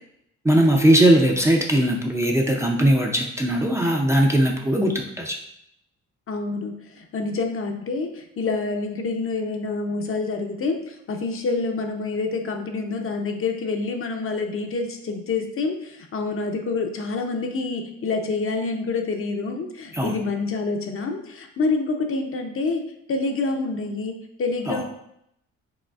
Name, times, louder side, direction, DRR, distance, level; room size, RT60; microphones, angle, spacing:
voice 1, 0.4-5.4 19.9-20.2 24.7-24.8, right 1 dB, 10° right, 0 dB, 0.4 m, -19 dB
voice 2, 6.3-22.8 23.1-24.8, left 3 dB, 45° left, 4 dB, 0.6 m, -27 dB
4.9 x 3.0 x 2.4 m, 0.76 s
cardioid pair, 90°, 30 cm